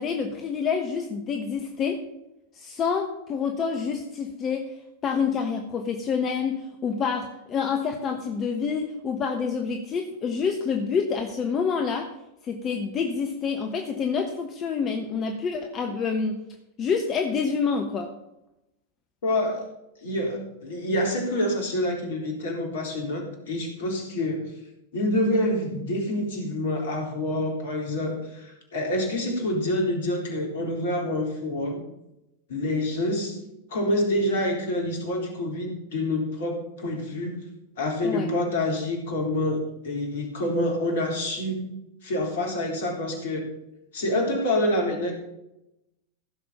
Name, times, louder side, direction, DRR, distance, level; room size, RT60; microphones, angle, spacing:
voice 1, 0.0-2.0 2.5-4.7 5.0-12.1 12.4-16.4 16.8-18.1 38.0-38.3, left 6 dB, 30° left, 4 dB, 1.3 m, -27 dB
voice 2, 19.2-19.6 20.0-24.5 24.9-31.8 32.5-33.4 33.7-37.4 37.8-41.7 42.0-43.5 43.9-45.1, left 1 dB, 60° left, 1 dB, 3.7 m, -27 dB
15.5 x 6.8 x 5.6 m, 0.87 s
figure-of-eight pair, 90°, 0 cm